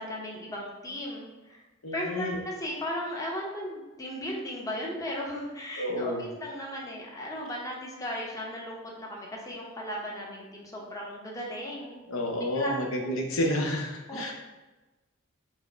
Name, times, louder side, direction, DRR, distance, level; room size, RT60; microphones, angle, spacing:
voice 1, 0.0-1.6 1.9-12.0 12.5-12.7 13.0-13.2 14.1-14.2, equal, 15° left, -3 dB, 0.7 m, -36 dB
voice 2, 1.8-2.4 5.8-6.2 12.1-14.3, left 1 dB, 80° left, 1 dB, 0.7 m, -30 dB
4.5 x 2.0 x 4.4 m, 1.1 s
head